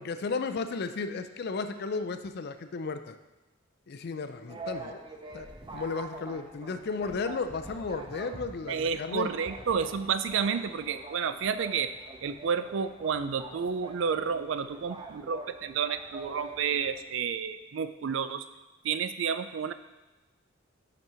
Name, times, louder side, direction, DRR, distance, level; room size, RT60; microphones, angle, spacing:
voice 1, 0.0-3.2 3.9-5.0 5.3-5.5 5.7-9.3, left 4 dB, 55° left, 10 dB, 0.4 m, -34 dB
sound 1, 4.5-17.0, right 2 dB, 25° right, 0.6 m, -45 dB
voice 2, 8.7-11.9 12.2-18.5 18.8-19.7, right 6 dB, 70° right, 11 dB, 0.4 m, -30 dB
5.4 x 5.2 x 5.5 m, 1.1 s
head